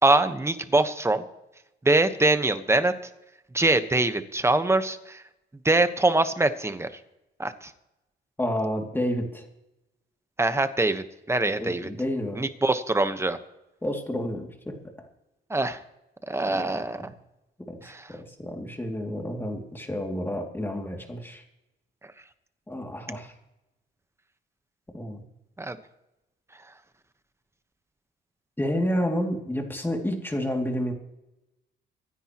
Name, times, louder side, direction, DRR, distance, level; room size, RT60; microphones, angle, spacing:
voice 1, 0.0-1.2 1.8-2.9 3.5-5.2 5.6-6.9 7.4-7.7 10.4-11.9 12.3-13.4 15.5-15.8 16.3-17.1 17.8-18.1 25.6-25.8, right 2 dB, 15° right, 10 dB, 1.1 m, -23 dB
voice 2, 8.4-9.4 11.6-12.4 13.8-15.1 16.5-17.1 17.7-21.4 22.7-23.3 24.9-25.2 28.6-30.9, equal, 10° left, 2 dB, 2.6 m, -30 dB
25.5 x 10.0 x 3.0 m, 0.93 s
cardioid pair, 90°, 20 cm